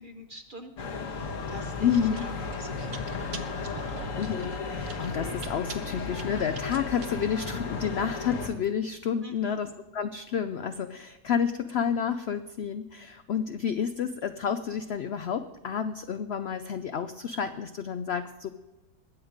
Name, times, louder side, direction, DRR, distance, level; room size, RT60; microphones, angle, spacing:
voice 1, 0.0-4.1 9.2-9.6, right 1 dB, 45° right, 6 dB, 0.7 m, -46 dB
sound 1, 0.8-8.5, left 4 dB, 55° left, 1.5 m, -35 dB
Chewing mastication, 1.1-8.4, equal, 60° right, 1.5 m, -42 dB
voice 2, 1.8-2.3 3.1-3.5 4.2-9.7 9.9-18.5, left 7 dB, 85° left, 10 dB, 0.5 m, -30 dB
20.5 x 8.1 x 5.0 m, 1.1 s
omnidirectional pair, 1.7 m